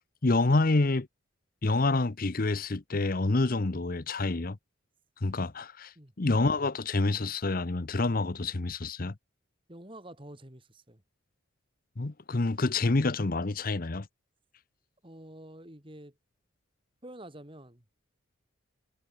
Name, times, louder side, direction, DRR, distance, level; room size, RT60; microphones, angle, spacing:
voice 1, 0.2-1.1 1.6-4.6 5.2-9.1 12.0-14.1, left 3 dB, 40° left, 0.8 m, -27 dB
voice 2, 9.7-11.0 15.0-16.2 17.0-17.8, right 1 dB, 25° right, 2.8 m, -48 dB
head